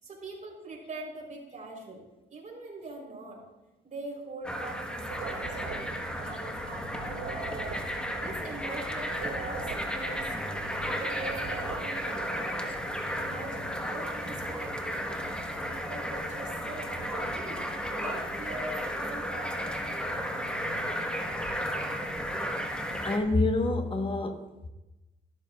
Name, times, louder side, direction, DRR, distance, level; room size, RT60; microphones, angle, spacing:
voice 1, 0.0-2.1 2.3-3.4 3.8-7.8 8.2-10.3 10.9-12.8 13.1-19.7, right 2 dB, 40° right, -1 dB, 4.0 m, -43 dB
sound 1, 4.4-23.2, equal, 5° left, 1.3 m, -34 dB
sound 2, 5.0-6.7 7.0-10.7 11.0-12.4, right 5 dB, 85° right, 2.1 m, -42 dB
voice 2, 22.9-24.7, left 2 dB, 25° left, 6 dB, 1.3 m, -28 dB
13.5 x 12.5 x 2.4 m, 1.0 s
cardioid pair, 90°, 20 cm